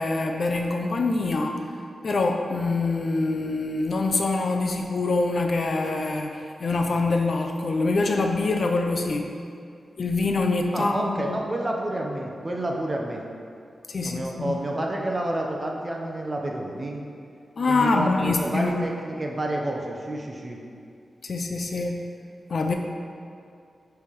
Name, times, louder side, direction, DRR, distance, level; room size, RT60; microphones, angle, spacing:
voice 1, 0.0-1.6 2.0-9.4 10.0-11.3 13.9-14.6 17.6-18.8 21.2-22.1 22.5-22.7, left 3 dB, 50° left, 3 dB, 0.5 m, -25 dB
voice 2, 10.7-13.2 14.0-17.0 17.7-20.6, right 1 dB, 20° right, 0 dB, 0.8 m, -29 dB
10.0 x 3.4 x 5.3 m, 2.4 s
wide cardioid pair, 150°, 0 cm